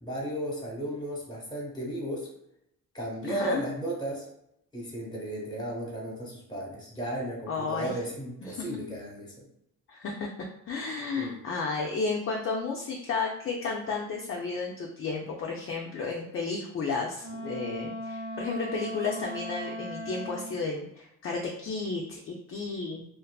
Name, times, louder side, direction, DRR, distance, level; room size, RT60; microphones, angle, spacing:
voice 1, 0.0-2.3 2.9-4.3 4.7-9.4 11.2-11.4, right 1 dB, 15° left, -3 dB, 1.0 m, -34 dB
voice 2, 3.3-3.6 7.5-7.9 8.4-8.7 9.9-10.3 10.7-23.0, left 4 dB, 40° left, 0 dB, 0.4 m, -32 dB
Wind instrument woodwind instrument, 17.2-20.6, equal, 40° right, 0.9 m, -38 dB
2.5 x 2.4 x 2.2 m, 0.78 s
cardioid pair, 85°, 33 cm